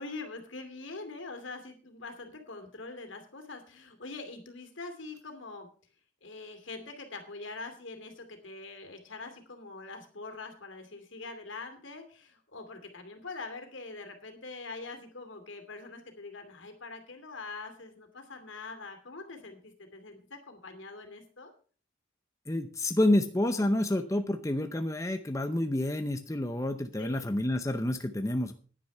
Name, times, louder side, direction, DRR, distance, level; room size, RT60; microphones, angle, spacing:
voice 1, 0.0-5.7 6.2-21.5 27.0-27.2, left 3 dB, 75° left, 6 dB, 2.6 m, -44 dB
voice 2, 22.5-28.5, left 1 dB, 15° left, 7 dB, 0.7 m, -29 dB
10.0 x 9.9 x 5.5 m, 0.41 s
head